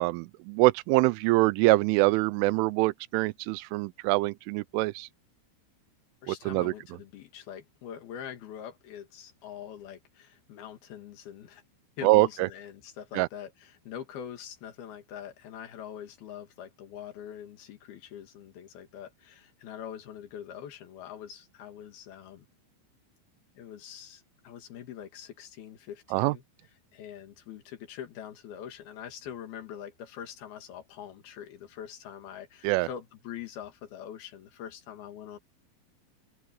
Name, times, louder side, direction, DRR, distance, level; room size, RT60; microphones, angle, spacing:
voice 1, 0.0-5.1 6.3-6.7 12.0-12.5 13.1-13.3 26.1-26.3 32.6-32.9, right 22 dB, 85° right, 3.1 m, -24 dB
voice 2, 6.2-11.6 12.0-22.5 23.6-26.4 26.9-35.4, left 9 dB, 60° left, 3.6 m, -43 dB
open air
omnidirectional pair, 5.6 m